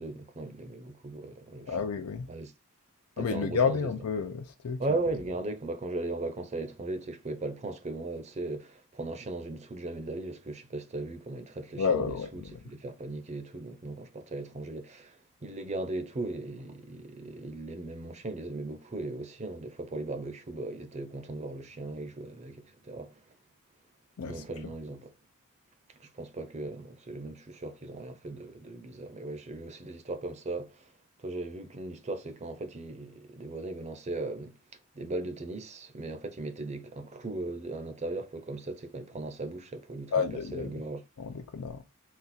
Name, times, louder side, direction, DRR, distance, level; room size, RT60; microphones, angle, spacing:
voice 1, 0.0-1.7 2.3-2.5 3.2-3.9 4.8-23.2 24.3-25.1 25.9-30.9 31.2-40.1 40.5-41.0, right 2 dB, 30° right, 0.5 m, -38 dB
voice 2, 1.7-2.3 3.2-5.0 11.8-12.6 24.2-24.4 40.1-40.7 41.2-41.8, left 5 dB, 85° left, 0.5 m, -30 dB
4.1 x 2.4 x 4.1 m
head